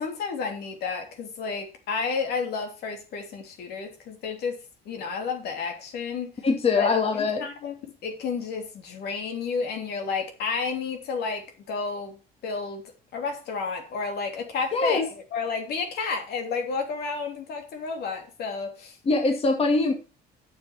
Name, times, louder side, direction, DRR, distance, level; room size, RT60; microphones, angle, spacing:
voice 1, 0.0-4.6 4.8-6.3 6.8-7.7 8.0-12.2 12.4-12.8 13.1-19.0, left 5 dB, 70° left, 3.1 m, -31 dB
voice 2, 6.4-7.5 14.7-15.0 19.1-19.9, left 3 dB, 35° left, 2.2 m, -22 dB
9.1 x 7.0 x 6.3 m
cardioid pair, 110°, 17 cm